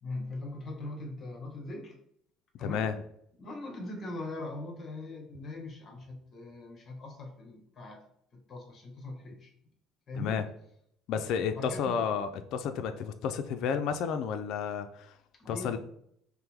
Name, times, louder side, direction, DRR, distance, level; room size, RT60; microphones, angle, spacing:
voice 1, 0.0-1.9 2.6-2.9 3.4-8.0 8.3-9.5 10.1-10.5 11.5-12.1 15.4-15.8, left 2 dB, 40° left, 1 dB, 1.1 m, -41 dB
voice 2, 2.6-2.9 10.2-10.4 11.1-15.1 15.5-15.8, left 7 dB, 65° left, 8 dB, 0.3 m, -31 dB
5.5 x 2.1 x 3.4 m, 0.70 s
supercardioid pair, 105°, 0 cm